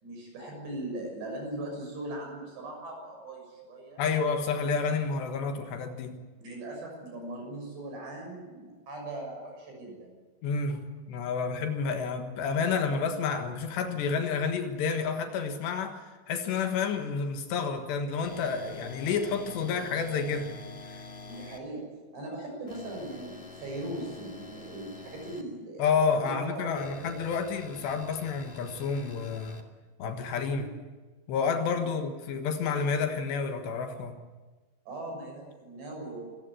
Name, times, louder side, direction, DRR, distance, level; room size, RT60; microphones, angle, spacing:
voice 1, 0.0-4.0 6.4-10.2 21.3-21.9 22.1-27.2 30.5-30.7 31.9-32.0 34.9-36.2, right 1 dB, 70° right, 1 dB, 8.6 m, -39 dB
voice 2, 4.0-6.2 10.4-10.8 11.1-16.0 16.3-20.6 20.8-21.1 25.8-29.6 30.0-30.7 31.3-34.2, left 5 dB, 80° left, 6 dB, 3.6 m, -30 dB
sound 1, 18.2-21.6 22.7-25.4 26.7-29.6, left 3 dB, 60° left, 0.5 m, -46 dB
25.0 x 15.5 x 9.8 m, 1.3 s
omnidirectional pair, 5.1 m